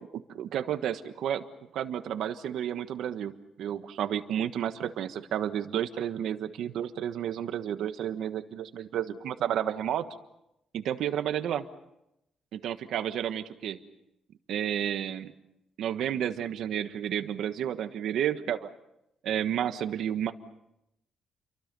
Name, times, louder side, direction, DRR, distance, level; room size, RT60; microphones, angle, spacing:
voice 1, 0.0-1.4 1.7-10.0 10.7-11.6 12.5-13.8 14.5-15.3 15.8-18.7 19.2-20.3, right 10 dB, 70° right, 9 dB, 1.4 m, -31 dB
29.5 x 23.5 x 5.4 m, 0.84 s
cardioid pair, 170°, 0 cm